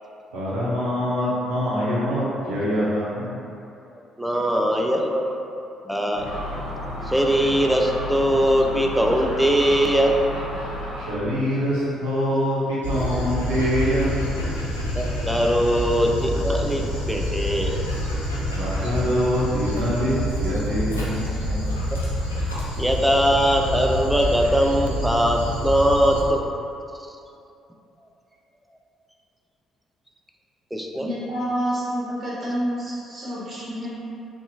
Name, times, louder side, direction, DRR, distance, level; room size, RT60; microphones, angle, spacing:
voice 1, 0.3-3.4 10.9-14.3 18.5-20.1 20.4-21.2 21.5-21.6, equal, 75° right, -8 dB, 0.6 m, -24 dB
voice 2, 4.2-6.3 7.0-10.2 14.9-17.8 22.7-26.4 27.0-27.1 30.7-31.1, equal, ahead, 1 dB, 0.3 m, -21 dB
Gull seagull, 6.1-11.2, left 1 dB, 60° left, 0.8 m, -32 dB
Dog, 12.8-26.2, equal, 90° left, 0.3 m, -27 dB
voice 3, 31.0-33.9, equal, 40° right, -9 dB, 1.0 m, -28 dB
2.7 x 2.3 x 2.6 m, 2.7 s
figure-of-eight pair, 45°, 0 cm